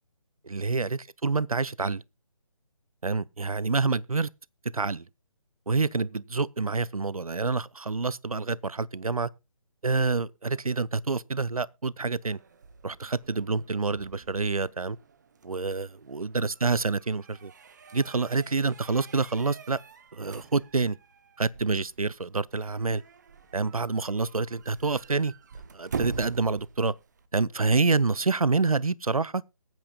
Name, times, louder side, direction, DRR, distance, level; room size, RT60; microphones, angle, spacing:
voice 1, 0.4-2.0 3.0-4.3 4.7-5.0 5.7-9.3 9.8-12.4 12.8-15.0 15.4-17.5 17.9-19.8 20.1-21.0 21.4-23.0 23.5-25.3 25.7-26.9 27.3-29.4, right 4 dB, 80° right, 0.6 m, -27 dB
sound 1, 12.2-27.3, right 5 dB, 30° right, 0.8 m, -44 dB
21.0 x 9.1 x 2.2 m
figure-of-eight pair, 150°, 18 cm